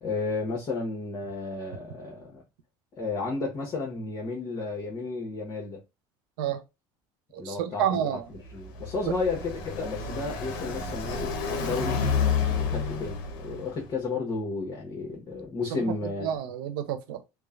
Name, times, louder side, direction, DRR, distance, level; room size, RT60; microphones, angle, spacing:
voice 1, 0.0-2.4 3.0-5.8 7.4-12.0 12.5-16.3, left 3 dB, 40° left, 1.0 m, -33 dB
voice 2, 7.3-8.2 15.7-15.8 16.2-17.3, right 9 dB, 85° right, 0.5 m, -29 dB
Car passing by, 8.3-13.9, left 5 dB, 75° left, 0.7 m, -30 dB
3.1 x 2.1 x 2.3 m
supercardioid pair, 105°, 11 cm